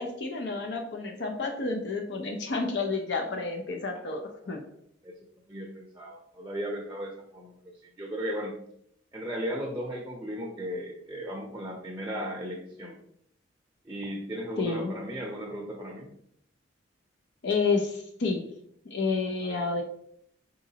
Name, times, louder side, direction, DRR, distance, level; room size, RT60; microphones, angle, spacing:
voice 1, 0.0-4.6 14.6-14.9 17.4-18.5 18.9-19.8, left 4 dB, 65° left, 3 dB, 0.5 m, -30 dB
voice 2, 5.5-8.5 9.1-13.0 13.8-16.1 19.4-19.6, equal, 15° right, -1 dB, 0.6 m, -36 dB
4.9 x 3.9 x 2.8 m, 0.69 s
head